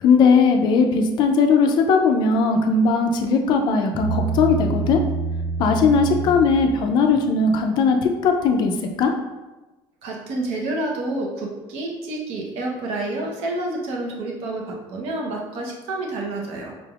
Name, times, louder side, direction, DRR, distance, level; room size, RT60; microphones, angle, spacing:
voice 1, 0.0-5.0 5.6-8.7 9.0-9.1, left 4 dB, 40° left, 4 dB, 0.4 m, -18 dB
Bass guitar, 3.9-7.3, right 3 dB, 5° left, 0.7 m, -27 dB
voice 2, 10.0-16.7, right 2 dB, 65° right, 0 dB, 0.8 m, -29 dB
5.1 x 3.3 x 2.3 m, 1.1 s
cardioid pair, 180°, 11 cm